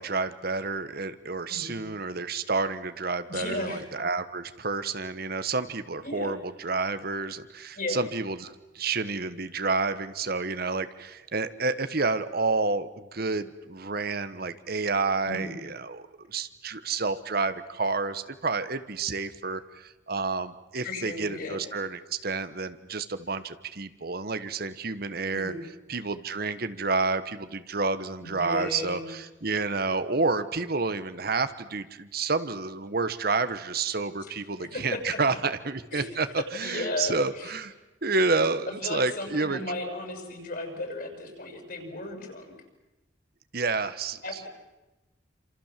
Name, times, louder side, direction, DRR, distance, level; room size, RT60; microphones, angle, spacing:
voice 1, 0.0-25.5 25.9-36.3 36.5-37.7 38.0-39.6 43.5-44.2, right 3 dB, 50° right, 11 dB, 1.3 m, -29 dB
voice 2, 1.5-1.8 3.3-3.8 6.0-6.3 7.8-8.0 15.2-15.6 20.8-21.6 25.3-25.6 28.2-29.1 34.6-35.2 35.9-36.1 36.6-37.6 38.7-42.5 44.2-44.5, left 2 dB, 50° left, 4 dB, 6.9 m, -35 dB
28.5 x 27.0 x 7.5 m, 1.0 s
head